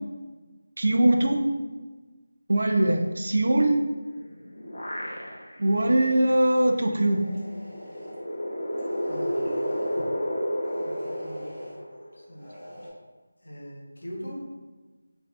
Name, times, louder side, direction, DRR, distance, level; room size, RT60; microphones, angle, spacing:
voice 1, 0.8-1.4 2.5-3.8 5.6-7.2, right 1 dB, 65° right, 4 dB, 0.3 m, -21 dB
sound 1, 4.1-5.7 6.2-6.3 7.5-12.3, equal, 55° left, 0.6 m, -31 dB
sound 2, 6.7-8.2 8.7-10.1 10.6-11.8 12.3-12.9, equal, 20° right, 0.7 m, -45 dB
voice 2, 9.0-9.6 10.8-11.5 12.1-12.5 13.4-14.5, equal, 90° left, -3 dB, 0.8 m, -41 dB
2.4 x 2.2 x 2.4 m, 1.3 s
figure-of-eight pair, 170°, 0 cm